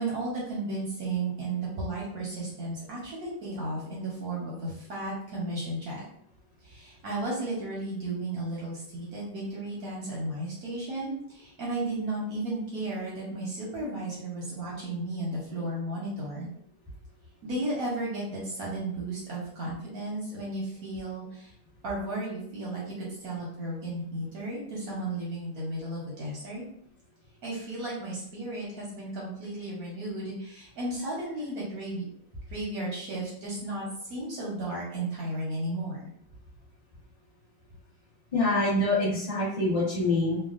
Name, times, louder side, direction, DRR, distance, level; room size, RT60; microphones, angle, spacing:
voice 1, 0.0-6.0 6.6-16.5 17.4-21.5 21.8-26.6 27.4-32.0 32.5-36.0, right 2 dB, 60° right, -5 dB, 1.0 m, -34 dB
voice 2, 38.3-40.4, left 2 dB, 30° left, -7 dB, 0.6 m, -25 dB
3.4 x 2.2 x 2.4 m, 0.68 s
omnidirectional pair, 2.3 m